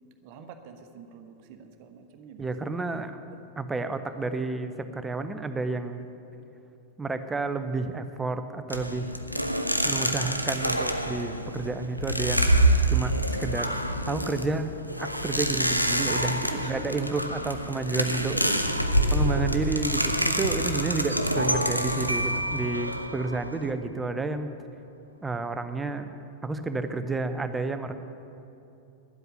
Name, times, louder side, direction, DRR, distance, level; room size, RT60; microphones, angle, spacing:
voice 1, 0.2-2.8 3.3-3.4 12.4-12.7 16.4-16.8 18.1-18.6 18.9-19.3 21.0-21.2, right 6 dB, 45° right, 7 dB, 1.1 m, -45 dB
voice 2, 2.4-3.1 3.6-6.1 7.0-9.1 9.8-13.7 14.1-14.7 15.0-18.4 19.1-24.5 25.2-26.0 26.4-27.9, right 3 dB, 10° right, 9 dB, 0.8 m, -30 dB
sound 1, 8.7-23.7, right 1 dB, 90° left, 0.6 m, -27 dB
sound 2, 21.1-23.5, right 1 dB, 90° right, 0.8 m, -32 dB
11.0 x 8.1 x 9.1 m, 2.8 s
figure-of-eight pair, 90°, 0 cm